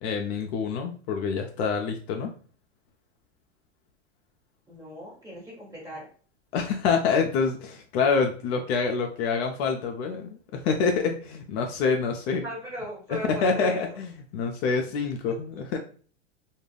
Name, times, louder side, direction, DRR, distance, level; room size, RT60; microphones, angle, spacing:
voice 1, 0.0-2.3 6.5-12.4 13.1-15.8, left 5 dB, 60° left, 2 dB, 0.5 m, -26 dB
voice 2, 4.7-6.1 12.3-13.8, equal, 10° right, -4 dB, 1.4 m, -38 dB
2.4 x 2.1 x 3.3 m, 0.41 s
hypercardioid pair, 120°, 37 cm